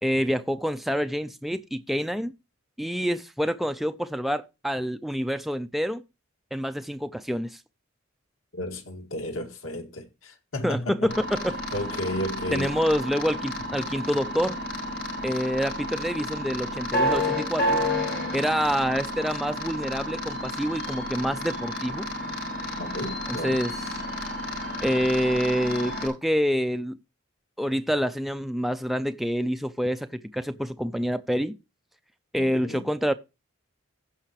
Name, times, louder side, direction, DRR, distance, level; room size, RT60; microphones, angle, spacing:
voice 1, 0.0-2.3 2.8-6.0 6.5-7.6 10.6-11.6 12.5-14.6 15.2-17.8 18.3-22.1 23.4-23.7 24.8-27.0 27.6-31.5 32.3-33.1, equal, ahead, 0.4 m, -27 dB
voice 2, 8.5-11.2 11.7-12.8 22.8-23.6 25.3-25.5 32.4-32.8, left 1 dB, 85° left, 2.1 m, -33 dB
sound 1, 11.1-26.1, left 1 dB, 60° left, 5.0 m, -31 dB
15.5 x 5.7 x 3.0 m
head